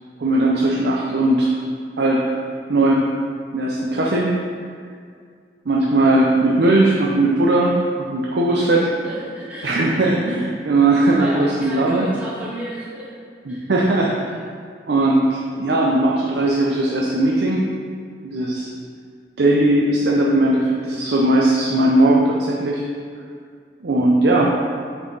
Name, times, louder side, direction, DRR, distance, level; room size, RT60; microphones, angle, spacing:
voice 1, 0.2-1.6 2.0-2.4 2.7-3.1 3.5-4.3 5.7-8.9 9.6-12.1 13.5-14.1 14.9-17.6 18.2-18.7 19.4-22.8 23.8-24.5, right 2 dB, 70° right, -3 dB, 0.5 m, -18 dB
voice 2, 8.7-9.7 11.2-13.1 13.5-13.7, equal, 5° right, -8 dB, 0.7 m, -33 dB
5.7 x 4.3 x 3.9 m, 2.1 s
head